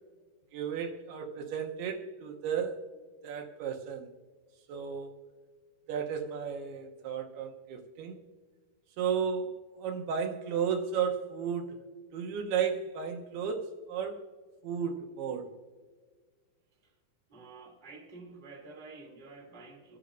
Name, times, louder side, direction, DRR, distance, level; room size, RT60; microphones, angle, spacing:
voice 1, 0.5-2.8 3.2-4.1 4.7-5.1 5.9-8.2 9.0-11.8 12.1-14.2 14.6-15.5, right 7 dB, 80° right, 3 dB, 2.8 m, -34 dB
voice 2, 17.3-20.0, right 3 dB, 15° right, -1 dB, 2.1 m, -49 dB
27.5 x 10.0 x 2.6 m, 1.5 s
omnidirectional pair, 4.7 m